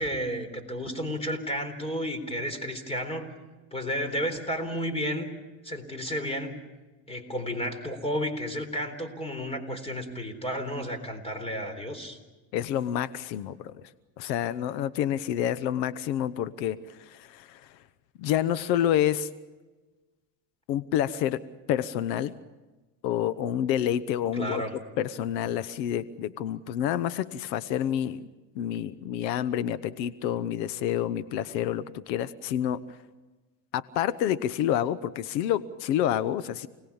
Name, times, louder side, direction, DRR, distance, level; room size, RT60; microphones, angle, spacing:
voice 1, 0.0-3.3 3.7-5.3 5.6-6.6 7.1-12.2 24.3-24.7, equal, 10° left, 9 dB, 4.0 m, -32 dB
voice 2, 12.5-13.7 14.2-16.8 17.1-17.6 18.2-19.3 20.7-21.4 21.7-22.3 23.0-24.6 25.0-28.3 28.5-32.8 33.7-36.7, left 10 dB, 85° left, 15 dB, 1.1 m, -28 dB
29.0 x 19.5 x 7.2 m, 1.2 s
supercardioid pair, 120°, 49 cm